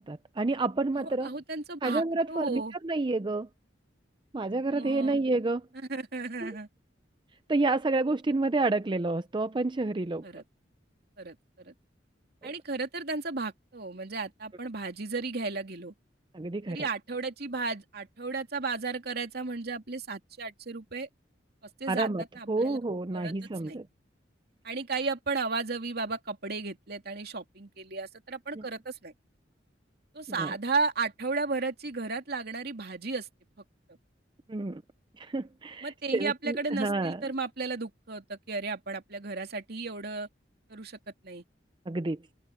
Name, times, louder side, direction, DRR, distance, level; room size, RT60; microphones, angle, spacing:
voice 1, 0.0-1.4 1.8-3.5 4.3-5.6 6.4-6.5 7.5-10.2 16.3-16.9 21.9-23.9 28.5-28.6 30.4-30.5 34.5-34.8 35.2-37.3 41.9-42.2, right 2 dB, 25° right, 0.5 m, -29 dB
voice 2, 1.0-2.7 4.7-5.2 5.9-6.7 10.2-10.4 11.2-11.7 12.4-15.9 16.7-21.1 21.8-22.8 23.1-23.3 23.6-23.8 24.6-29.1 30.1-33.3 35.8-40.3 40.7-41.0 41.2-41.4, right 3 dB, 60° right, 2.7 m, -34 dB
head